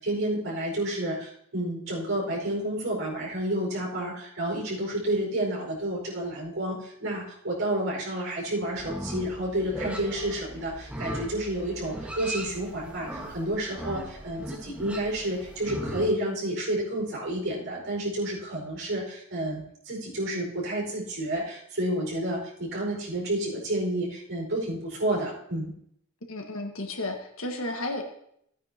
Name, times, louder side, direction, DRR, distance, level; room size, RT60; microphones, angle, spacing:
voice 1, 0.0-25.7, right 1 dB, 70° right, -3 dB, 5.0 m, -30 dB
Livestock farm animals working animals, 8.7-16.1, equal, 5° right, 1.4 m, -38 dB
voice 2, 26.3-28.0, left 2 dB, 75° left, 3 dB, 1.6 m, -33 dB
15.5 x 9.2 x 2.9 m, 0.71 s
head